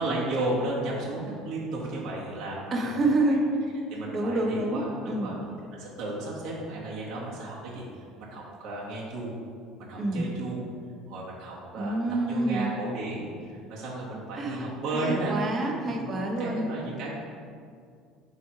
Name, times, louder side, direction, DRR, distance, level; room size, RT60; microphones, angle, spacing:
voice 1, 0.0-2.9 3.9-5.4 5.7-7.8 8.2-9.3 9.8-10.6 11.1-12.0 12.3-15.3 15.9-16.1 16.4-17.1, right 2 dB, 55° right, -6 dB, 1.4 m, -33 dB
voice 2, 2.7-3.5 4.1-5.3 10.0-10.3 11.8-12.7 14.4-16.7, right 2 dB, 30° right, 2 dB, 0.9 m, -27 dB
9.1 x 3.1 x 4.7 m, 2.2 s
cardioid pair, 140°, 0 cm